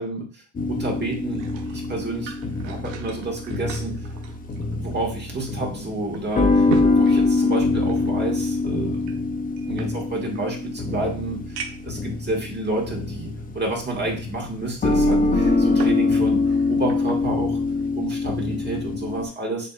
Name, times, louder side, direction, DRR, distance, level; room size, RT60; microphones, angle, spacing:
voice 1, 0.0-1.4 1.7-2.3 2.6-4.0 4.8-9.1 9.6-17.6 17.9-19.7, right 2 dB, 25° right, -1 dB, 1.4 m, -30 dB
sound 1, 0.5-19.3, left 3 dB, 20° left, 0.6 m, -24 dB
sound 2, 1.1-5.1 5.5-5.6 6.1-8.1 9.0-10.4 11.0-11.1 11.6-12.0 12.7-12.8 15.1-16.1 16.4-17.3 17.7-17.9, right 8 dB, 75° right, 0.9 m, -38 dB
7.5 x 2.7 x 2.2 m, 0.40 s
supercardioid pair, 95°, 43 cm